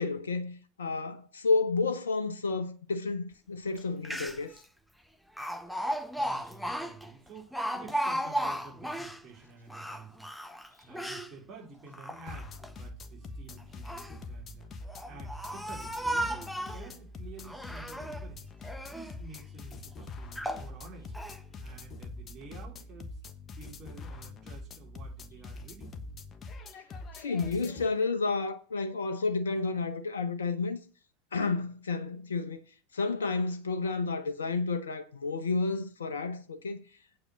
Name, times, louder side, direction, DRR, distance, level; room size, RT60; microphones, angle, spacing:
voice 1, 0.0-4.5 27.1-30.8 31.3-32.6 32.9-36.8, left 4 dB, 80° left, 0.9 m, -31 dB
Speech, 3.8-3.9 4.0-4.6 5.4-9.2 9.7-11.3 11.9-12.7 13.6-14.2 14.9-16.9 17.4-18.3 18.6-19.2 19.7-19.8 20.3-20.7 21.1-21.4, equal, ahead, 0.9 m, -35 dB
voice 2, 6.2-10.3 10.8-18.4 18.9-21.1 21.6-23.2 23.6-26.0, right 3 dB, 35° right, 4.6 m, -50 dB
sound 1, 12.3-27.9, left 2 dB, 30° left, 1.2 m, -44 dB
8.5 x 5.1 x 7.0 m
figure-of-eight pair, 85°, 0 cm